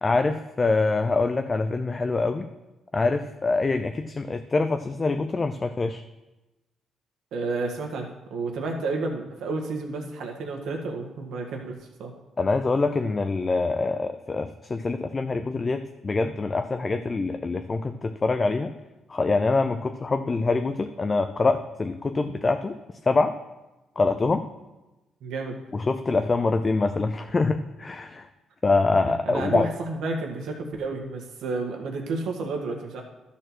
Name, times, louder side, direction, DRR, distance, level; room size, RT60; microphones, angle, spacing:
voice 1, 0.0-2.5 2.9-6.0 12.4-18.7 19.1-22.7 23.0-23.3 24.0-24.4 25.7-28.3 28.6-29.7, left 3 dB, 30° left, 8 dB, 0.5 m, -25 dB
voice 2, 7.3-12.1 25.2-25.6 29.0-33.0, right 3 dB, 75° right, 1 dB, 1.7 m, -31 dB
12.5 x 4.4 x 6.2 m, 1.0 s
cardioid pair, 90°, 0 cm